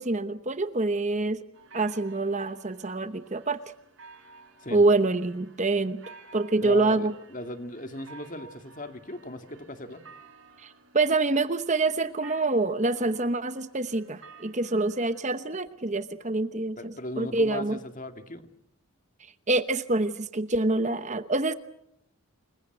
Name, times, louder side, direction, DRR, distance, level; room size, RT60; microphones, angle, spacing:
voice 1, 0.0-1.4 1.7-3.6 4.7-6.0 6.3-7.1 10.6-17.8 19.5-21.5, right 2 dB, 30° right, 11 dB, 0.9 m, -26 dB
sound 1, 1.5-15.2, right 4 dB, 60° right, 4.6 m, -53 dB
voice 2, 6.6-10.0 16.8-18.4, left 1 dB, 35° left, 7 dB, 2.2 m, -37 dB
29.0 x 22.5 x 8.0 m, 0.76 s
head